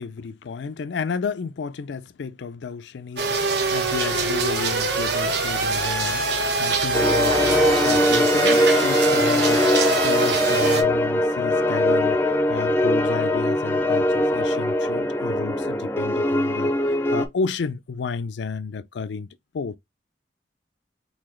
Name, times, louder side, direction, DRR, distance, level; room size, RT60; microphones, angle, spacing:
voice 1, 0.0-19.3 19.5-19.8, left 5 dB, 85° left, 0.4 m, -32 dB
sound 1, 3.2-10.8, right 3 dB, 70° right, 1.1 m, -23 dB
sound 2, 6.9-17.3, left 1 dB, 15° left, 0.5 m, -21 dB
4.0 x 2.7 x 3.1 m
head